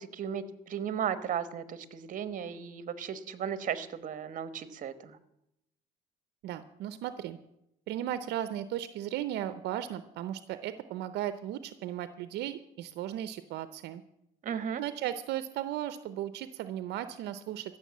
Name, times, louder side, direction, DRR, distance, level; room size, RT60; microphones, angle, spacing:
voice 1, 0.0-5.2 14.4-14.8, right 8 dB, 50° right, 14 dB, 1.2 m, -35 dB
voice 2, 6.4-7.4 7.9-14.0 14.8-17.8, right 12 dB, 80° right, 13 dB, 0.7 m, -36 dB
15.0 x 6.7 x 8.6 m, 0.82 s
cardioid pair, 110°, 17 cm